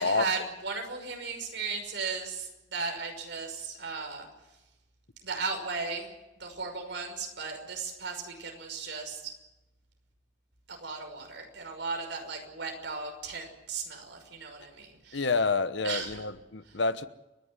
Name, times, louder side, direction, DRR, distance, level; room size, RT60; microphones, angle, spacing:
voice 1, 0.0-4.3 5.2-6.1 6.4-9.3 10.7-15.3 15.8-16.2, right 4 dB, 75° right, 5.8 m, -36 dB
voice 2, 15.1-17.1, left 4 dB, 75° left, 1.1 m, -28 dB
30.0 x 11.5 x 9.7 m
head